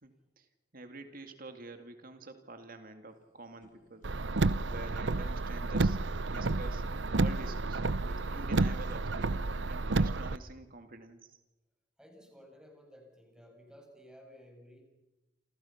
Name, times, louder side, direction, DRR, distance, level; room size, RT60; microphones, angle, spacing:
voice 1, 0.0-0.5 0.7-4.1 4.7-6.0 6.3-6.8 7.1-11.4, right 2 dB, 50° right, 7 dB, 2.3 m, -48 dB
Fire, 3.1-9.4, equal, 50° left, 4.5 m, -64 dB
Car, 4.0-10.4, right 2 dB, 85° right, 0.8 m, -30 dB
voice 2, 12.0-14.8, equal, 5° right, 2 dB, 7.3 m, -55 dB
29.0 x 28.5 x 5.9 m, 1.0 s
head